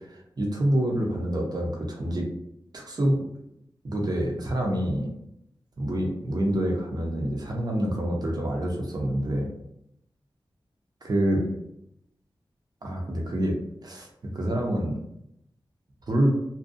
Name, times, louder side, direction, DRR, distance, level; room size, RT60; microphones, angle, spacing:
voice 1, 0.1-2.3 2.7-3.2 3.8-5.1 5.8-9.5 11.0-11.5 12.8-13.6 13.8-14.1 14.3-15.0 16.1-16.3, right 1 dB, 50° right, 0 dB, 0.6 m, -26 dB
2.5 x 2.2 x 2.5 m, 0.78 s
wide cardioid pair, 65°, 9 cm